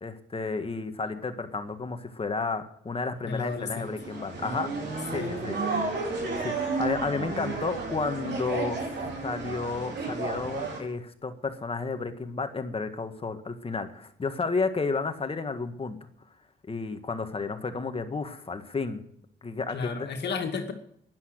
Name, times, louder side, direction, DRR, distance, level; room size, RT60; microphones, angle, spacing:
voice 1, 0.0-4.7 5.1-5.6 5.9-6.0 6.4-16.0 16.7-19.0 19.4-20.1, left 4 dB, 30° left, 8 dB, 1.7 m, -32 dB
voice 2, 3.2-3.9 5.1-5.4 19.7-20.7, left 5 dB, 60° left, 4 dB, 2.2 m, -33 dB
sound 1, 3.5-10.8, right 3 dB, 60° right, 4.8 m, -32 dB
11.0 x 11.0 x 8.0 m, 0.69 s
cardioid pair, 90°, 20 cm